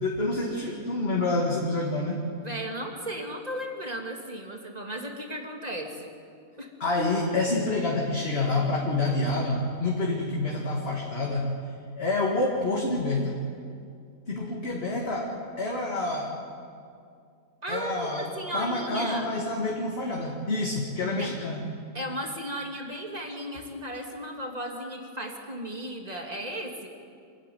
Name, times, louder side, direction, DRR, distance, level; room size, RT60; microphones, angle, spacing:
voice 1, 0.0-2.3 6.8-11.5 12.0-13.4 14.3-16.4 17.7-21.7, left 2 dB, 35° left, -2 dB, 2.3 m, -28 dB
voice 2, 2.4-6.1 6.6-6.7 17.6-19.3 21.2-21.3 21.9-26.9, right 1 dB, 25° right, 2 dB, 2.5 m, -35 dB
26.5 x 13.5 x 9.3 m, 2.3 s
omnidirectional pair, 1.8 m